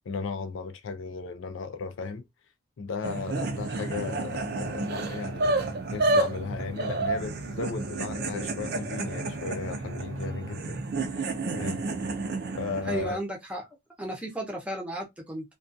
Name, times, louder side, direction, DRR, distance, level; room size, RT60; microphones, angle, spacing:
voice 1, 0.1-2.3 2.8-5.5 5.9-10.8 11.1-11.8 12.6-13.2, left 5 dB, 70° left, 0.4 m, -35 dB
sound 1, 3.0-13.1, right 2 dB, 50° right, 0.4 m, -30 dB
voice 2, 12.8-13.6 14.0-15.5, right 1 dB, 5° right, 0.6 m, -34 dB
2.4 x 2.3 x 2.5 m
head